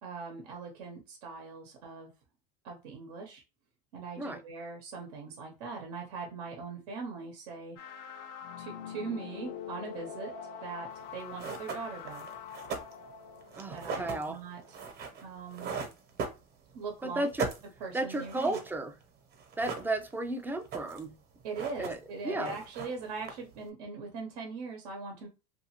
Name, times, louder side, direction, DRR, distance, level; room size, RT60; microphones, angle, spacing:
voice 1, 0.0-2.1 2.6-3.4 3.9-7.8 8.6-10.3 10.6-12.2 13.7-14.8 15.2-15.7 16.7-17.3 17.8-18.6 21.4-25.3, right 4 dB, 85° right, 2 dB, 0.8 m, -41 dB
sound 1, 7.8-14.6, left 7 dB, 55° left, 0.4 m, -44 dB
sound 2, 11.0-11.1 11.4-16.9 17.1-18.8 19.0-19.1 19.3-20.3 20.5-21.1 21.4-22.1 22.4-23.6, right 5 dB, 50° right, 0.9 m, -39 dB
voice 2, 13.6-14.4 17.0-17.5 17.9-18.9 19.6-21.1 21.8-22.0 22.2-22.5, right 2 dB, 10° right, 6 dB, 0.4 m, -33 dB
2.8 x 2.5 x 2.9 m, 0.30 s
supercardioid pair, 125°, 20 cm